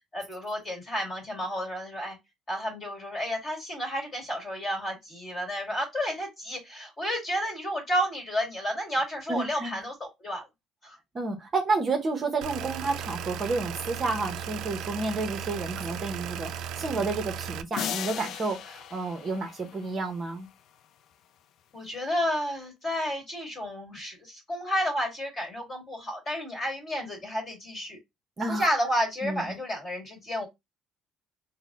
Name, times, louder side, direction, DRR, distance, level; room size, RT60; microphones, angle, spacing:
voice 1, 0.1-2.2 2.5-10.5 10.8-11.0 16.8-17.0 21.7-28.0 28.5-30.5, equal, 25° left, 1.9 m, -31 dB
voice 2, 9.3-9.8 11.1-20.5 28.4-28.7 29.2-29.4, right 3 dB, 25° right, 0.8 m, -30 dB
sound 1, 12.4-17.6, right 8 dB, 65° right, 0.4 m, -36 dB
sound 2, 17.7-20.2, left 9 dB, 50° left, 0.3 m, -37 dB
4.1 x 2.1 x 3.5 m
cardioid pair, 160°, 0 cm